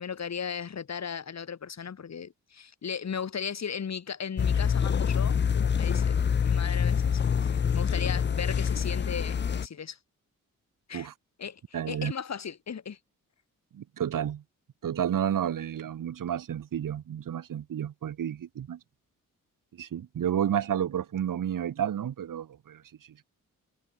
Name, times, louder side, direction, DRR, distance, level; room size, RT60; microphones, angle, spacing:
voice 1, 0.0-10.0 10.9-11.1 11.4-13.0, left 7 dB, 55° left, 2.6 m, -37 dB
sound 1, 4.4-9.7, left 7 dB, 35° left, 0.6 m, -26 dB
voice 2, 11.7-12.1 13.7-14.4 14.8-18.8 19.7-22.8, right 9 dB, 75° right, 2.5 m, -31 dB
cardioid pair, 80°, 32 cm